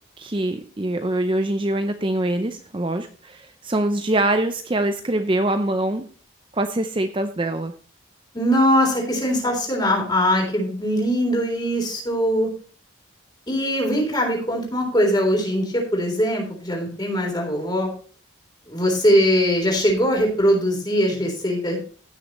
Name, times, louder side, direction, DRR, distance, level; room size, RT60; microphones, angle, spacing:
voice 1, 0.2-6.0 6.5-7.7, right 1 dB, 25° right, 8 dB, 0.6 m, -24 dB
voice 2, 8.3-12.5 13.5-17.9 18.7-21.8, equal, 20° left, 0 dB, 3.7 m, -21 dB
16.0 x 6.5 x 3.0 m, 0.42 s
head